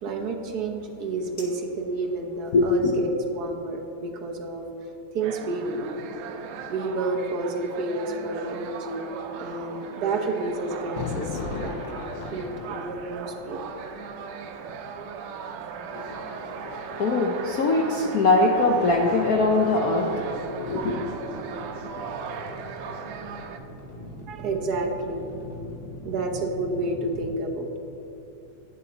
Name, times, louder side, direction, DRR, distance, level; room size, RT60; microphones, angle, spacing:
voice 1, 0.0-4.6 5.1-5.8 6.7-9.1 9.4-13.6 24.3-25.3 26.0-27.8, right 3 dB, 55° right, 2 dB, 1.3 m, -30 dB
voice 2, 2.5-2.9 15.9-21.0, left 2 dB, 65° left, 0 dB, 0.9 m, -23 dB
sound 1, 5.2-23.6, right 6 dB, 85° right, 1.6 m, -38 dB
Thunder, 9.7-16.9 18.0-19.7, left 6 dB, 80° left, 1.5 m, -39 dB
sound 2, 18.6-27.3, equal, 30° left, 1.5 m, -41 dB
12.0 x 8.9 x 4.0 m, 3.0 s
omnidirectional pair, 2.4 m